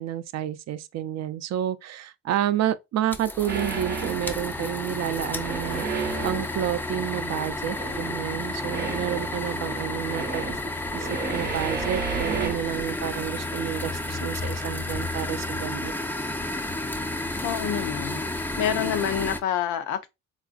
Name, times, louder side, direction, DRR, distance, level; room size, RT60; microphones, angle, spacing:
voice 1, 0.0-5.8 6.2-10.6 10.9-15.9, right 11 dB, 60° right, 0.4 m, -30 dB
sound 1, 3.1-19.4, left 2 dB, 5° left, 0.3 m, -31 dB
sound 2, 3.5-4.6 5.2-6.7 7.3-8.2 8.6-12.6, right 6 dB, 35° right, 0.7 m, -33 dB
voice 2, 17.4-18.2 18.6-20.1, left 9 dB, 80° left, 0.6 m, -27 dB
3.6 x 2.4 x 2.4 m
cardioid pair, 90°, 30 cm